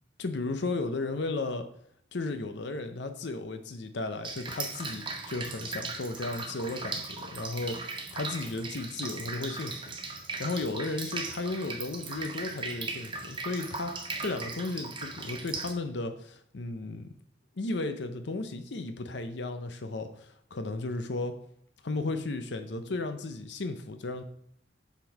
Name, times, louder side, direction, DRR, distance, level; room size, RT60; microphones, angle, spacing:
voice 1, 0.2-1.7 2.1-10.0 10.4-17.1 17.6-21.4 21.8-24.2, left 2 dB, 65° left, 8 dB, 0.6 m, -34 dB
Drip, 4.2-15.7, right 3 dB, 25° right, 0.9 m, -38 dB
7.2 x 4.0 x 5.3 m, 0.70 s
head